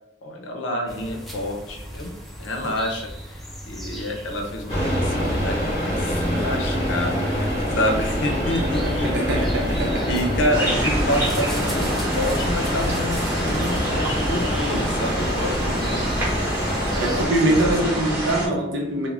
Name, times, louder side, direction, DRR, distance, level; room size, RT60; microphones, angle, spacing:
voice 1, 0.2-2.1 2.4-9.1 9.6-16.0 16.9-18.0, left 1 dB, 80° left, 2 dB, 0.5 m, -28 dB
sound 1, 0.9-17.3, equal, ahead, 0.5 m, -38 dB
sound 2, 4.7-17.3, equal, 35° left, 1.0 m, -25 dB
voice 2, 8.8-10.1 17.0-19.1, right 1 dB, 65° right, 0 dB, 0.7 m, -23 dB
sound 3, 10.5-18.5, right 1 dB, 15° right, 0.8 m, -27 dB
2.4 x 2.1 x 3.2 m, 0.89 s
head